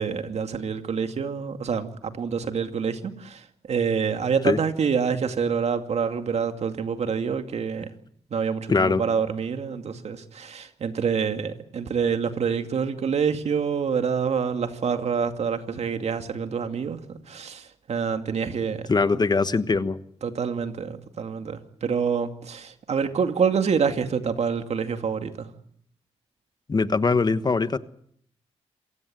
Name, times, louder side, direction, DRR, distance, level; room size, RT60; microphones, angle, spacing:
voice 1, 0.0-7.9 8.3-18.9 20.2-25.5, right 6 dB, 65° right, 2.3 m, -27 dB
voice 2, 8.7-9.0 18.9-20.0 26.7-27.8, left 4 dB, 35° left, 1.2 m, -22 dB
27.0 x 16.0 x 9.2 m
cardioid pair, 80°, 12 cm